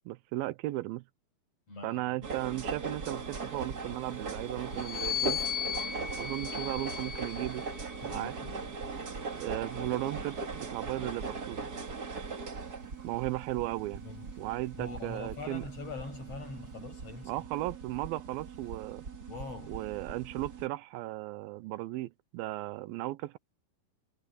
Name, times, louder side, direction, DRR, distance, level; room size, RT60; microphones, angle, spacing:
voice 1, 0.1-1.0 1.8-5.4 6.2-7.6 8.1-8.3 9.4-11.6 13.0-14.0 14.4-15.6 17.3-19.0 19.7-23.4, right 17 dB, 85° right, 2.5 m, -36 dB
voice 2, 1.7-2.3 8.0-8.8 14.0-14.5 14.8-17.3 19.3-19.8, left 3 dB, 40° left, 7.9 m, -43 dB
sound 1, 2.2-20.7, right 4 dB, 35° right, 2.0 m, -40 dB
sound 2, 4.7-8.3 9.1-10.7, left 9 dB, 90° left, 3.3 m, -38 dB
omnidirectional pair, 4.2 m